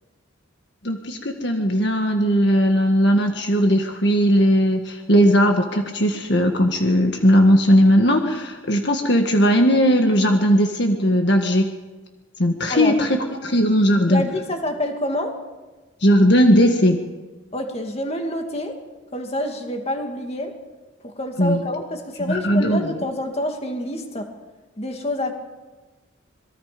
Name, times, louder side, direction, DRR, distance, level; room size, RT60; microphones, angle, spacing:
voice 1, 0.8-11.7 12.4-14.3 16.0-17.0 21.4-21.6 22.2-23.0, equal, 55° left, 4 dB, 1.8 m, -18 dB
voice 2, 12.7-13.1 14.1-15.3 17.5-18.8 19.1-20.5 21.0-24.3 24.8-25.3, left 1 dB, 30° left, 3 dB, 2.6 m, -27 dB
27.0 x 22.0 x 5.3 m, 1.2 s
head